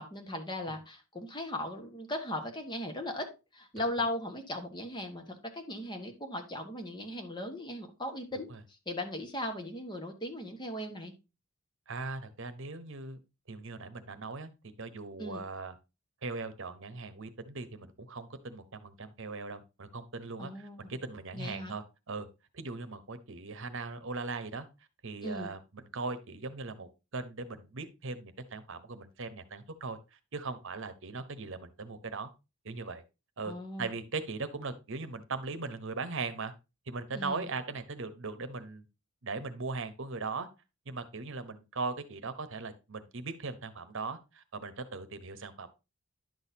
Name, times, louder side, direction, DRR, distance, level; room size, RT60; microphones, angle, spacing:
voice 1, 0.0-3.3 3.5-8.5 8.9-11.1 15.2-15.4 20.4-20.9 21.3-21.7 25.2-25.5 33.4-33.9 37.1-37.5, left 1 dB, 20° left, 4 dB, 1.4 m, -38 dB
voice 2, 11.9-13.2 13.5-15.7 16.2-22.3 22.5-24.7 25.0-32.3 32.6-33.0 33.4-36.5 36.9-38.8 39.2-40.5 40.9-45.7, right 3 dB, 60° right, 11 dB, 1.0 m, -39 dB
11.0 x 6.4 x 2.8 m, 0.27 s
head